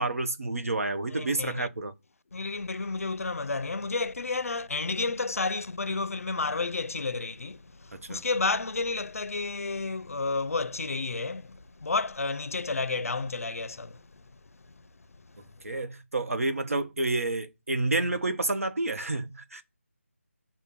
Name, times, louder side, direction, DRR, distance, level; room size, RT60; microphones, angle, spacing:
voice 1, 0.0-1.9 7.9-8.2 15.6-19.6, right 2 dB, 85° right, 0.8 m, -29 dB
voice 2, 1.1-1.7 2.3-14.1 14.8-14.9 15.4-15.5, left 3 dB, 85° left, 0.5 m, -31 dB
5.7 x 2.2 x 3.5 m
figure-of-eight pair, 175°, 8 cm